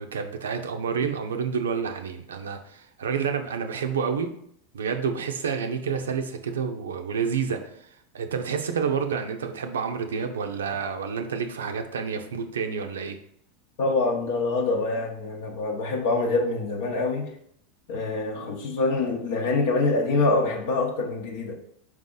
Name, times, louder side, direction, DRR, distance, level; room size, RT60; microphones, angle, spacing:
voice 1, 0.0-4.3 4.7-7.6 8.1-13.2, right 6 dB, 85° right, 6 dB, 0.5 m, -29 dB
voice 2, 13.8-17.3 17.9-21.6, left 3 dB, 70° left, 1 dB, 0.8 m, -25 dB
4.6 x 2.8 x 3.8 m, 0.68 s
hypercardioid pair, 95°, 0 cm